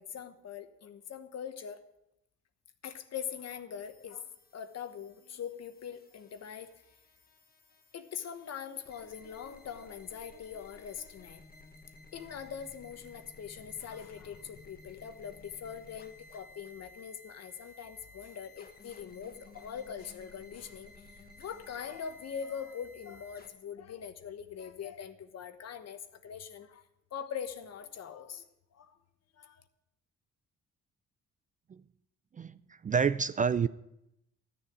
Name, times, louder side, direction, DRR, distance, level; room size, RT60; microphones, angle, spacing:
voice 1, 0.0-1.8 2.8-6.7 7.9-11.4 12.1-26.8 27.1-28.4 28.7-29.0 29.4-29.6, left 8 dB, 55° left, 10 dB, 1.2 m, -42 dB
sound 1, 3.8-23.5, left 2 dB, 30° left, 1.4 m, -56 dB
voice 2, 32.3-33.7, right 6 dB, 25° right, 16 dB, 0.4 m, -29 dB
13.0 x 6.9 x 8.8 m, 0.84 s
cardioid pair, 90°, 30 cm